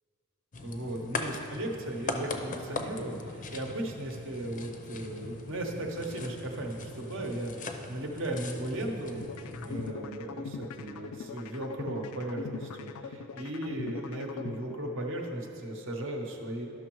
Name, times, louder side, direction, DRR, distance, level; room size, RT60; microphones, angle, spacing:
sound 1, 0.5-9.9, left 3 dB, 40° left, 0.5 m, -40 dB
voice 1, 0.6-16.7, right 1 dB, 65° right, 2 dB, 0.9 m, -36 dB
sound 2, 9.2-15.2, left 5 dB, 90° left, 0.4 m, -41 dB
12.0 x 6.1 x 3.0 m, 2.8 s
head